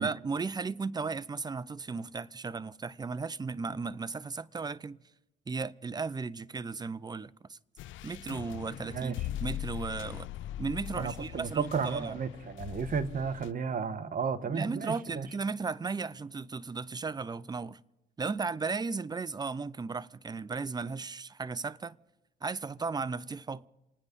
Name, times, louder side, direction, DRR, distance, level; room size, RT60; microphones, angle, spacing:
voice 1, 0.0-5.0 5.5-7.6 8.0-10.3 10.6-12.2 14.5-17.8 18.2-22.0 22.4-23.6, right 4 dB, 20° right, 0.5 m, -35 dB
sound 1, 7.8-13.5, left 13 dB, 75° left, 0.5 m, -40 dB
voice 2, 8.8-9.1 11.0-15.3, right 6 dB, 45° right, 1.2 m, -33 dB
28.0 x 9.7 x 5.3 m
cardioid pair, 90°, 20 cm